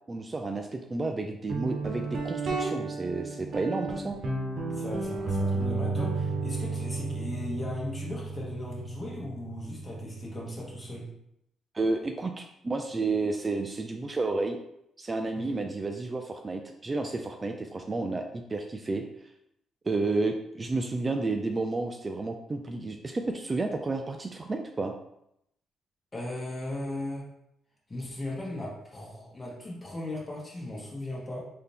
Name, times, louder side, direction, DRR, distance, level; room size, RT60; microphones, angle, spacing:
voice 1, 0.1-4.2 11.7-14.6 15.0-19.0 19.8-24.9, right 3 dB, 25° right, 4 dB, 0.3 m, -31 dB
Guitar, 1.5-11.0, right 3 dB, 60° right, 0.9 m, -33 dB
voice 2, 4.7-11.1 15.3-15.6 26.1-27.3 27.9-31.4, left 1 dB, 25° left, -3 dB, 1.4 m, -37 dB
3.9 x 2.8 x 3.4 m, 0.79 s
cardioid pair, 90°, 0 cm